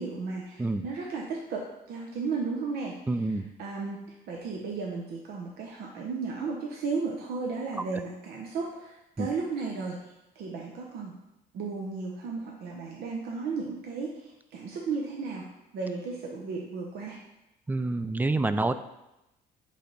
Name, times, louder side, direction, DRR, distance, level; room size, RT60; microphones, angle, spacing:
voice 1, 0.0-3.0 3.6-10.0 10.3-11.2 11.5-17.2, right 4 dB, 70° right, -1 dB, 0.9 m, -34 dB
voice 2, 3.1-3.5 9.2-9.3 17.7-18.7, right 2 dB, 10° right, 11 dB, 0.3 m, -27 dB
8.3 x 3.4 x 4.0 m, 0.93 s
cardioid pair, 110°, 17 cm